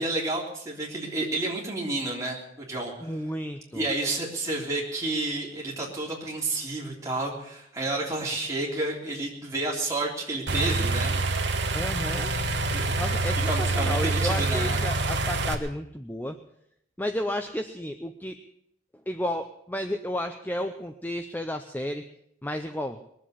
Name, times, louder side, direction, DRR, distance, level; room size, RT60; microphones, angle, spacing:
voice 1, 0.0-3.1 3.7-11.2 12.7-12.9 13.5-14.8, right 2 dB, 15° right, -3 dB, 3.3 m, -30 dB
voice 2, 3.0-3.8 11.7-12.3 13.0-16.4 17.0-18.4 19.1-22.0 22.4-23.0, left 1 dB, 10° left, 7 dB, 0.5 m, -32 dB
sound 1, 10.5-15.5, right 2 dB, 55° right, 1.4 m, -26 dB
21.0 x 7.6 x 8.2 m, 0.75 s
head